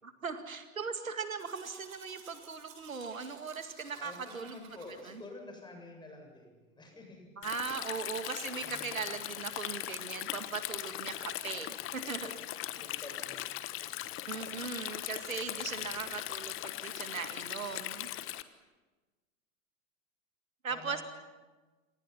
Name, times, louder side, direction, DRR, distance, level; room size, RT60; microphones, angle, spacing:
voice 1, 0.0-4.6 5.1-5.2 7.4-12.4 14.3-18.1 20.6-21.0, right 5 dB, 75° right, 8 dB, 2.1 m, -39 dB
Domestic sounds home sounds, 1.4-5.1, right 6 dB, 50° right, 7.7 m, -55 dB
voice 2, 3.9-7.3 8.6-9.0 12.2-12.3 12.7-13.6 20.7-21.0, left 2 dB, 10° left, 3 dB, 7.5 m, -49 dB
Stream, 7.4-18.4, left 15 dB, 30° left, 1.3 m, -39 dB
29.0 x 26.5 x 5.8 m, 1.2 s
figure-of-eight pair, 95°, 41 cm